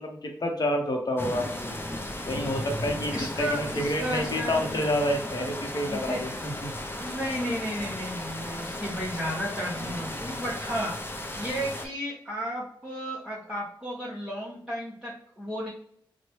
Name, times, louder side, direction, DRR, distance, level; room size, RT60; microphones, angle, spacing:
voice 1, 0.0-1.8 2.3-6.7, left 1 dB, 45° left, 2 dB, 0.9 m, -29 dB
sound 1, 1.2-11.9, left 1 dB, 25° left, 0.7 m, -35 dB
voice 2, 3.1-4.8 5.9-6.2 6.9-10.9 11.4-15.7, equal, 5° right, -8 dB, 1.1 m, -33 dB
3.0 x 2.2 x 3.0 m, 0.65 s
cardioid pair, 40°, 9 cm